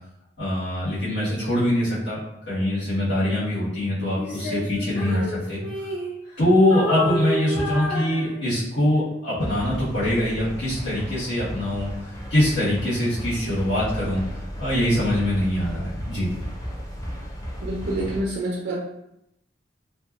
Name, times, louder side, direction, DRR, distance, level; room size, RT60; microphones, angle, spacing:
voice 1, 0.4-2.2 2.5-5.9 6.4-14.2 14.6-16.3, left 1 dB, 70° left, -11 dB, 1.2 m, -23 dB
Female singing, 4.2-6.4 6.7-8.8, left 1 dB, 40° left, 1.0 m, -30 dB
sound 1, 9.4-18.2, equal, 20° left, 0.4 m, -35 dB
voice 2, 17.6-18.8, right 1 dB, 85° right, -4 dB, 0.6 m, -27 dB
2.6 x 2.2 x 2.3 m, 0.81 s
head